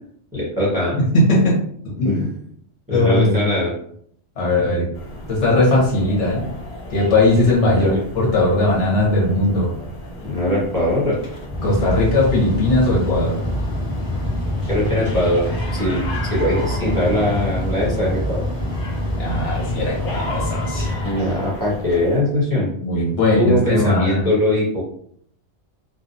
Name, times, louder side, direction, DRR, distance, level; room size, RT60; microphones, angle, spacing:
voice 1, 0.3-1.0 2.0-2.3 2.9-3.7 7.7-8.0 10.2-11.2 14.7-15.5 15.7-16.0 16.3-18.4 21.0-22.7 23.3-24.8, left 1 dB, 20° right, -8 dB, 0.9 m, -21 dB
voice 2, 1.1-1.6 2.0-2.2 2.9-3.4 4.4-4.9 5.3-6.5 6.9-9.7 11.6-13.4 19.2-21.1 22.8-24.3, left 2 dB, 80° left, -3 dB, 1.2 m, -18 dB
sound 1, 4.9-22.2, left 1 dB, 50° left, 1.2 m, -34 dB
Mechanical fan, 11.1-21.7, left 1 dB, 30° left, 0.9 m, -26 dB
2.6 x 2.3 x 2.5 m, 0.65 s
omnidirectional pair, 1.2 m